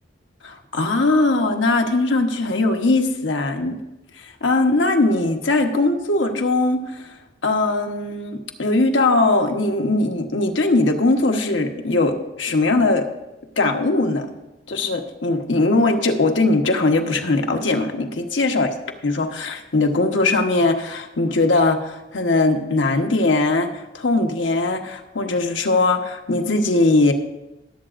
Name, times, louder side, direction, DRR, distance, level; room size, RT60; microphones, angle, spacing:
voice 1, 0.4-3.8 4.2-7.1 7.4-13.1 13.6-14.3 14.7-18.7 19.0-27.1, left 2 dB, 90° left, 4 dB, 1.0 m, -20 dB
21.0 x 7.8 x 2.5 m, 0.97 s
head